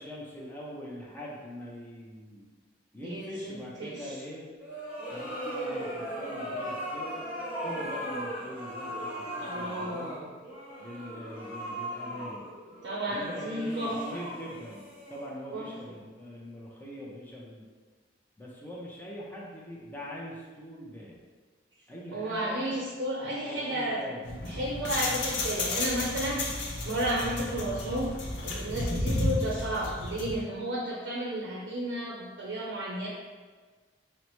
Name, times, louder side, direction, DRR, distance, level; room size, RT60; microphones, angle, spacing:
voice 1, 0.0-2.4 2.9-4.5 5.1-7.2 7.6-10.2 10.8-12.4 13.1-17.7 18.4-21.2 21.9-22.6 23.3-24.6, equal, 10° left, -5 dB, 0.5 m, -42 dB
voice 2, 3.0-4.2 9.4-10.3 12.8-14.2 15.5-15.7 22.1-24.0 24.5-28.1 28.4-33.1, right 1 dB, 80° right, -3 dB, 0.6 m, -33 dB
sound 1, 4.6-15.6, equal, 10° right, 1.0 m, -38 dB
sound 2, 24.2-30.4, left 2 dB, 80° left, 0.6 m, -32 dB
5.5 x 2.1 x 3.0 m, 1.4 s
head